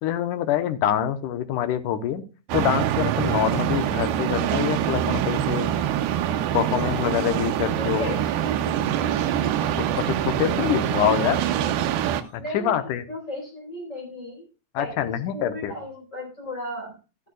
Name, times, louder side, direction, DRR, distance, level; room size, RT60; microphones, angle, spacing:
voice 1, 0.0-2.2 2.5-5.7 6.5-8.1 9.9-11.4 12.3-13.1 14.7-15.8, left 11 dB, 75° left, 11 dB, 2.4 m, -25 dB
sound 1, 2.5-12.2, right 10 dB, 90° right, 2.6 m, -24 dB
sound 2, 3.2-4.0 4.4-5.2 5.5-6.4 6.7-7.6 7.9-8.7 9.2-10.0 10.4-11.2 11.5-12.4, equal, 15° right, 7.0 m, -44 dB
voice 2, 7.8-9.0 11.0-11.1 12.3-14.5 14.8-17.0, equal, 20° left, 1 dB, 4.6 m, -35 dB
13.5 x 11.0 x 2.3 m, 0.31 s
omnidirectional pair, 4.0 m